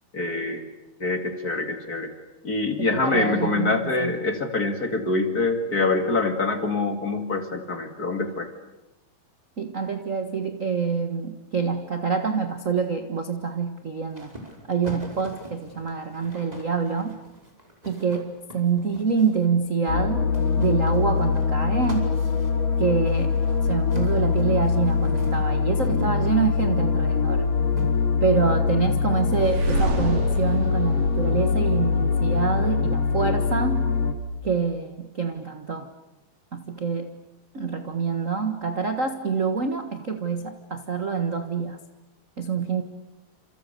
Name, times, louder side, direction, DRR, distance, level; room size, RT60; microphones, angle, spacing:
voice 1, 0.1-0.6 1.0-2.1 2.4-8.5, left 3 dB, 30° left, 6 dB, 2.3 m, -25 dB
voice 2, 2.8-4.2 9.6-14.3 14.7-17.2 17.8-22.1 22.8-27.5 28.2-33.9 34.4-35.9 36.5-37.1 37.5-41.8 42.4-42.8, right 5 dB, 45° right, 7 dB, 0.9 m, -26 dB
sound 1, 14.1-19.5 20.3-26.7 27.8-27.9, right 1 dB, 10° right, 5.0 m, -41 dB
sound 2, 19.9-34.1, left 5 dB, 50° left, 3.3 m, -23 dB
sound 3, 29.3-32.3, right 4 dB, 80° right, 5.5 m, -30 dB
30.0 x 27.5 x 6.9 m, 0.96 s
omnidirectional pair, 3.8 m